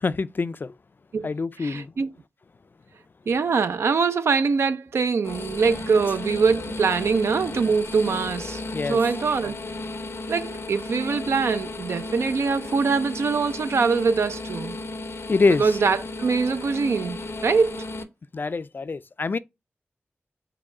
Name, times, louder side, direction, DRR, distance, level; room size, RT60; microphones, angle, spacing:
voice 1, 0.0-0.7 1.2-1.9 8.7-9.0 15.3-15.7 18.3-19.4, left 4 dB, 50° left, 0.3 m, -24 dB
voice 2, 1.6-2.1 3.3-9.6 10.3-14.8 15.6-17.8, right 5 dB, 85° right, 0.4 m, -23 dB
sound 1, 5.2-18.0, left 2 dB, 80° left, 0.7 m, -34 dB
4.8 x 2.2 x 4.8 m
cardioid pair, 50°, 4 cm